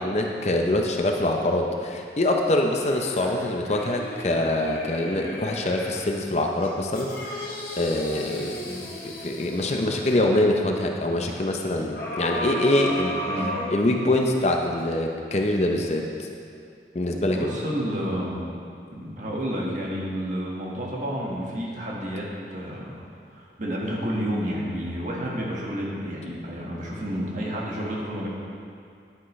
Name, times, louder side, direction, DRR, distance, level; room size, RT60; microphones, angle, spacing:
voice 1, 0.0-8.6 9.0-13.2 13.7-16.3 16.9-17.5, left 1 dB, 40° left, 2 dB, 0.6 m, -24 dB
sound 1, 2.9-6.0 6.6-10.2 11.9-14.3 14.8-14.9, left 1 dB, 55° left, 1.8 m, -35 dB
voice 2, 17.2-18.5 18.9-23.0 23.3-28.3, equal, 45° right, -4 dB, 1.6 m, -30 dB
10.5 x 9.6 x 3.2 m, 2.4 s
head